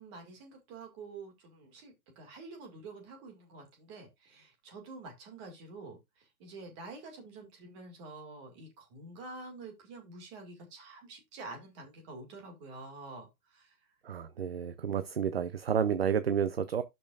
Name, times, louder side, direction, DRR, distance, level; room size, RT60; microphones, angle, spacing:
voice 1, 0.0-13.8, right 3 dB, 20° right, 2.0 m, -48 dB
voice 2, 14.1-16.8, right 7 dB, 40° right, 0.5 m, -30 dB
11.5 x 5.5 x 2.4 m
hypercardioid pair, 175°, 47 cm